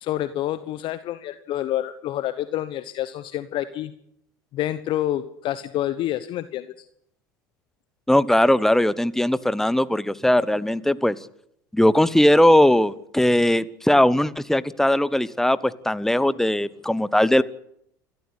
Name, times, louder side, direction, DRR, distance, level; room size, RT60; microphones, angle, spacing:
voice 1, 0.0-3.9 4.5-6.8, left 13 dB, 50° left, 12 dB, 1.2 m, -28 dB
voice 2, 8.1-11.2 11.7-17.4, left 1 dB, 5° left, 17 dB, 1.1 m, -19 dB
28.5 x 14.0 x 8.3 m, 0.73 s
hypercardioid pair, 75°, 10 cm